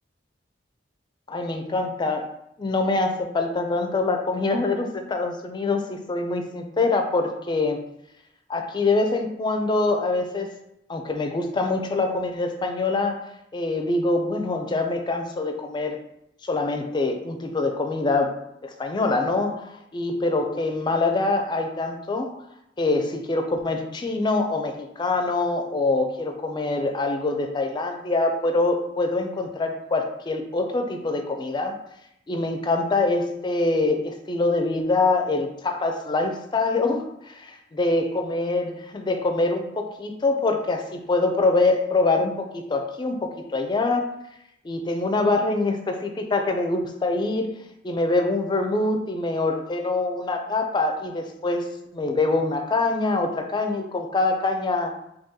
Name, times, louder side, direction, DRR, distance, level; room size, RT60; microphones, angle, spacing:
voice 1, 1.3-2.3 2.6-7.8 8.5-10.5 10.9-13.2 13.5-16.0 16.4-22.4 22.8-31.8 32.3-44.1 44.6-47.5 47.8-54.9, left 3 dB, 25° left, 5 dB, 0.4 m, -24 dB
3.7 x 2.8 x 2.8 m, 0.81 s
head